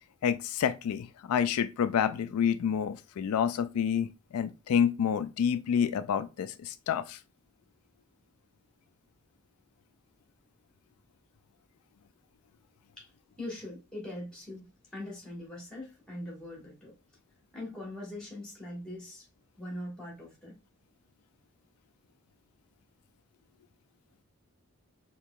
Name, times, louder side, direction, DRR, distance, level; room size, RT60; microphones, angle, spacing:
voice 1, 0.2-7.2, left 8 dB, 90° left, 0.3 m, -28 dB
voice 2, 13.4-16.9 17.5-19.3 19.6-20.5, left 1 dB, 5° left, 1.4 m, -42 dB
4.4 x 2.9 x 2.3 m
head